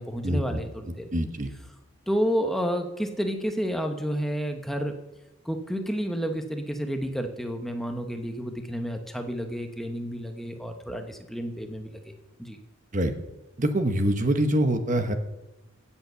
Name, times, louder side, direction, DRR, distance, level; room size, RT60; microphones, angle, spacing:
voice 1, 0.0-1.1 2.1-4.9 5.4-12.1 12.4-12.6, equal, ahead, 5 dB, 0.9 m, -30 dB
voice 2, 1.1-1.5 12.9-13.1 13.6-15.1, right 1 dB, 40° right, 8 dB, 1.0 m, -24 dB
16.0 x 7.2 x 6.8 m, 1.0 s
head